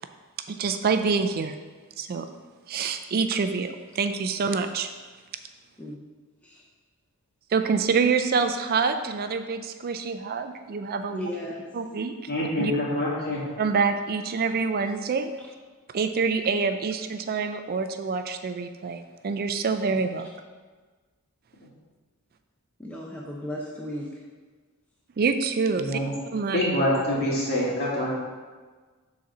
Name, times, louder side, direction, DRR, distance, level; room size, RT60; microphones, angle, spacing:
voice 1, 0.5-1.6 2.0-2.3 2.7-4.9 7.5-11.3 11.7-12.1 12.6-12.7 13.6-15.3 15.9-20.3 25.2-26.0 26.3-26.6, right 5 dB, 45° right, 8 dB, 0.4 m, -26 dB
voice 2, 11.1-11.7 22.8-24.2, left 1 dB, 5° left, -4 dB, 0.7 m, -35 dB
voice 3, 12.3-13.4 25.8-26.1 26.5-28.1, left 1 dB, 45° left, -6 dB, 2.4 m, -25 dB
7.6 x 4.1 x 6.0 m, 1.4 s
head